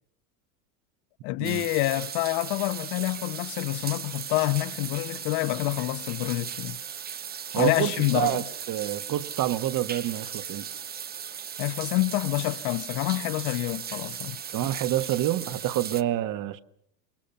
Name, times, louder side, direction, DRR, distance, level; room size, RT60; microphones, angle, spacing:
voice 1, 1.2-6.8 7.6-8.4 11.6-14.4, left 19 dB, 55° left, 1.3 m, -27 dB
sound 1, 1.4-16.0, right 8 dB, 20° right, 0.8 m, -37 dB
voice 2, 7.5-10.7 14.5-16.6, right 13 dB, 40° right, 1.4 m, -28 dB
27.5 x 23.5 x 5.6 m
hypercardioid pair, 110°, 48 cm